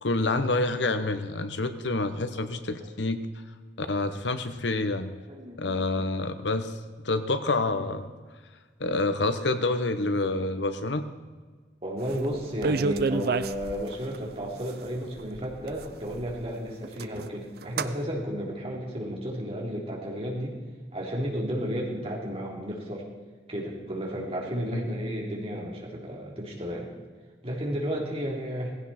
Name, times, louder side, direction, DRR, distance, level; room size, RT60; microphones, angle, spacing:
voice 1, 0.0-3.3 3.8-5.1 5.6-6.7 7.0-8.1 8.8-11.1 24.7-24.9, left 2 dB, 80° left, 10 dB, 1.0 m, -27 dB
voice 2, 2.3-2.9 5.3-6.1 7.7-7.9 11.8-20.6 20.9-23.1 23.5-26.9 27.4-28.7, equal, 35° right, -2 dB, 3.4 m, -33 dB
sound 1, 12.1-12.2 12.4-14.2 14.8-14.9 15.2-16.5 16.8-17.3 17.6-17.9, right 3 dB, 60° right, 0.6 m, -29 dB
18.0 x 16.0 x 4.3 m, 1.4 s
head